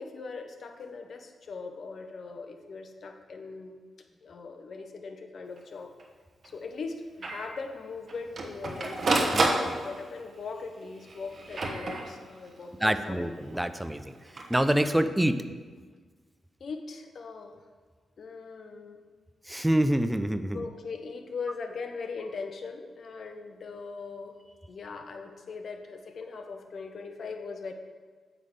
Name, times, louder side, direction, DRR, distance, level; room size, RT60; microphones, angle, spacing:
voice 1, 0.0-3.8 4.2-5.9 6.4-9.0 9.2-13.2 16.6-17.6 18.2-19.0 20.5-24.3 24.7-27.7, left 4 dB, 60° left, 5 dB, 0.8 m, -40 dB
Printer, 5.6-5.7 6.0-6.1 6.4-6.5 7.2-7.5 8.1-10.2 11.0-12.5 14.2-14.6, right 2 dB, 55° right, 1.2 m, -29 dB
voice 2, 9.3-9.7 12.8-14.2 14.5-15.4 19.5-20.6, right 1 dB, 10° right, 10 dB, 0.5 m, -26 dB
8.3 x 3.6 x 6.6 m, 1.5 s
supercardioid pair, 55°, 0 cm